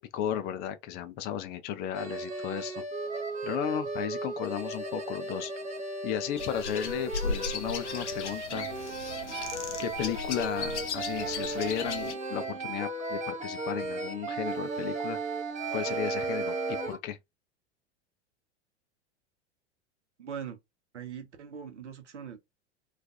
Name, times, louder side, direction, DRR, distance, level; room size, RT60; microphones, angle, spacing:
voice 1, 0.0-2.8 3.4-5.5 6.0-8.7 9.8-15.2 15.7-17.2, left 10 dB, 30° left, 0.4 m, -34 dB
sound 1, 1.9-17.0, right 3 dB, 20° right, 0.8 m, -35 dB
sound 2, 6.4-12.1, left 5 dB, 75° left, 0.6 m, -37 dB
voice 2, 20.2-20.6 20.9-22.4, right 8 dB, 80° right, 0.8 m, -41 dB
2.4 x 2.3 x 2.5 m
figure-of-eight pair, 90°, 35 cm